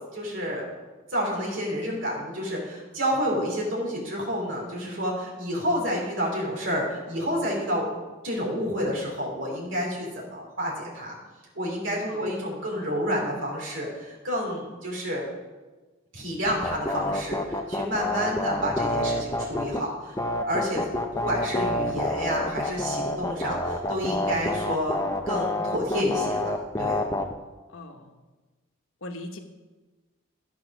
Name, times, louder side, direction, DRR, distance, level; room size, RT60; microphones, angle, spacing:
voice 1, 0.1-0.7 1.1-7.9 8.2-11.2 11.5-15.3 16.1-20.2 20.4-20.9 21.1-25.0 25.2-27.0, equal, 65° right, -3 dB, 3.1 m, -29 dB
sound 1, 16.4-19.8 20.2-27.3, left 1 dB, 15° left, 0.6 m, -28 dB
voice 2, 27.7-28.1 29.0-29.4, left 2 dB, 85° left, 5 dB, 1.1 m, -39 dB
12.0 x 6.0 x 6.1 m, 1.2 s
head